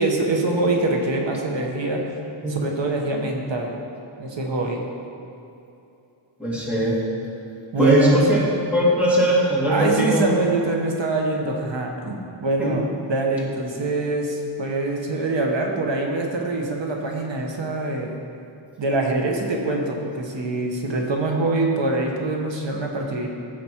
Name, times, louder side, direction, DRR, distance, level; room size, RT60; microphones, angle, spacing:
voice 1, 0.0-2.0 2.5-3.7 4.2-4.8 7.7-8.4 9.7-18.2 18.8-23.3, right 2 dB, 65° right, 1 dB, 1.3 m, -24 dB
voice 2, 6.4-7.0 7.8-8.4 8.7-10.3 12.6-12.7, right 1 dB, 5° right, -7 dB, 2.1 m, -19 dB
15.5 x 5.2 x 4.5 m, 2.8 s
wide cardioid pair, 175°, 48 cm